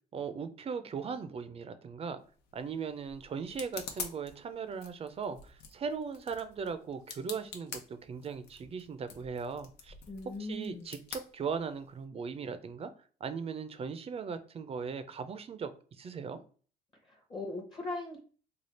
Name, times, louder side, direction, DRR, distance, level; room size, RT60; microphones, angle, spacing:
voice 1, 0.1-2.2 2.5-9.9 10.4-12.9 13.2-15.7 16.0-16.4, right 6 dB, 35° right, 10 dB, 0.5 m, -38 dB
sound 1, 2.2-12.0, left 6 dB, 75° left, 0.8 m, -47 dB
voice 2, 10.1-10.9 17.1-18.2, left 2 dB, 25° left, 1 dB, 0.9 m, -39 dB
3.3 x 2.3 x 4.2 m, 0.41 s
cardioid pair, 110°, 17 cm